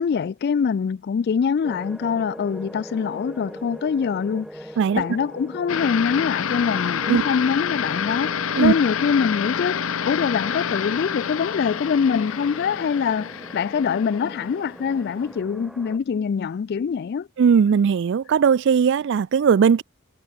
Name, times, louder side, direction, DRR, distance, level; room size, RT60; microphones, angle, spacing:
voice 1, 0.0-17.3, left 6 dB, 50° left, 0.3 m, -24 dB
sound 1, 1.6-16.0, equal, ahead, 3.2 m, -41 dB
sound 2, 5.7-14.8, left 7 dB, 65° left, 0.7 m, -28 dB
voice 2, 17.4-19.8, right 6 dB, 55° right, 0.3 m, -18 dB
head